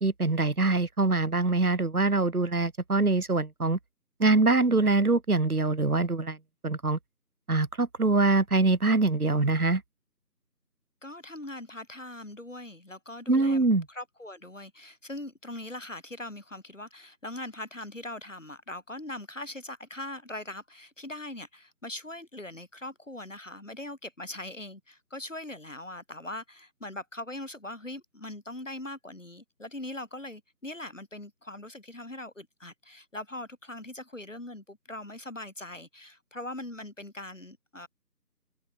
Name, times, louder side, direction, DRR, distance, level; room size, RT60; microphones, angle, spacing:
voice 1, 0.0-3.8 4.2-6.4 6.6-7.0 7.5-9.8 13.3-13.9, right 3 dB, 60° right, 1.3 m, -24 dB
voice 2, 11.0-37.9, left 1 dB, 50° left, 2.3 m, -41 dB
figure-of-eight pair, 170°, 50 cm